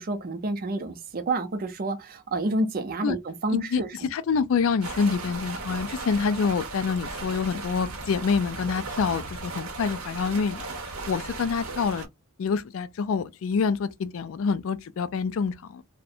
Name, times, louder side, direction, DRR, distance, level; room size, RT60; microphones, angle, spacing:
voice 1, 0.0-4.1, right 2 dB, 40° right, 0.5 m, -29 dB
voice 2, 3.5-3.8 4.1-10.7 11.1-12.1 12.4-15.8, left 5 dB, 60° left, 0.3 m, -26 dB
sound 1, 4.8-12.1, right 3 dB, 75° right, 0.7 m, -36 dB
2.4 x 2.1 x 2.7 m
head